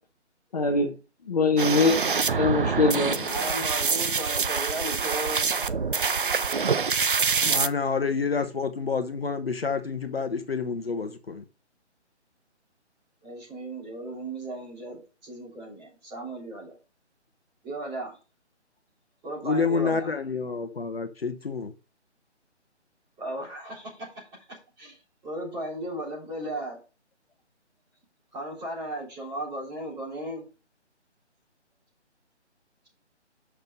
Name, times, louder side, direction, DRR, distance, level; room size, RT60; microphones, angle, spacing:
voice 1, 0.5-0.9 1.2-2.0 2.4-3.3, left 3 dB, 35° left, 1.2 m, -22 dB
sound 1, 1.6-7.7, right 5 dB, 50° right, 0.5 m, -25 dB
voice 2, 3.2-5.4 13.2-16.8 17.6-18.2 19.2-20.1 23.2-25.0 25.2-26.8 28.3-30.4, right 1 dB, 10° right, 3.4 m, -36 dB
voice 3, 7.4-11.4 19.4-21.7, left 5 dB, 55° left, 1.0 m, -28 dB
6.5 x 6.2 x 5.4 m
figure-of-eight pair, 150°, 35 cm